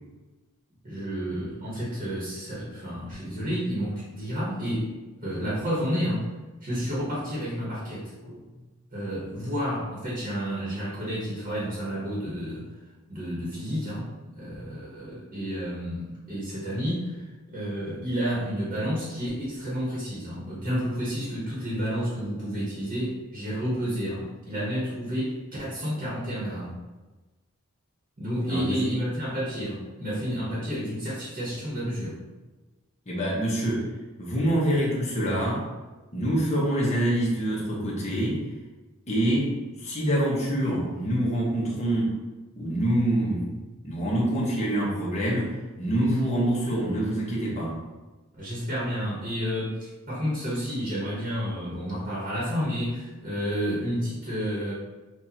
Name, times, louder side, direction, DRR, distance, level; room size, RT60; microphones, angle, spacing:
voice 1, 0.8-5.0 5.2-6.3 6.6-8.1 8.9-12.7 13.1-26.7 28.2-32.2 48.3-54.7, equal, 40° right, -6 dB, 1.2 m, -30 dB
voice 2, 33.1-33.9 34.2-35.6 36.1-38.4 39.1-42.1 42.6-47.7, right 1 dB, 30° left, -4 dB, 1.1 m, -26 dB
6.1 x 2.5 x 2.9 m, 1.2 s
head